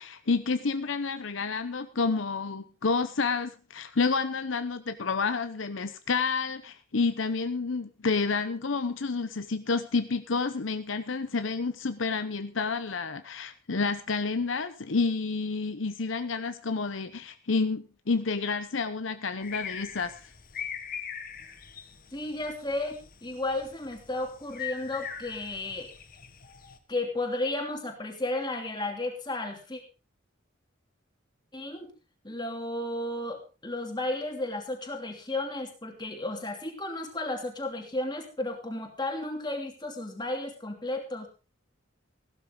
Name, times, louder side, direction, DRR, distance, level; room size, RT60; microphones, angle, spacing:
voice 1, 0.0-20.1, left 4 dB, 75° left, 10 dB, 0.8 m, -29 dB
sound 1, 19.4-26.8, left 8 dB, 45° left, 1.3 m, -42 dB
voice 2, 22.1-25.9 26.9-29.8 31.5-31.9 32.2-41.3, left 2 dB, 20° left, 3 dB, 2.9 m, -33 dB
15.5 x 12.5 x 3.9 m, 0.34 s
head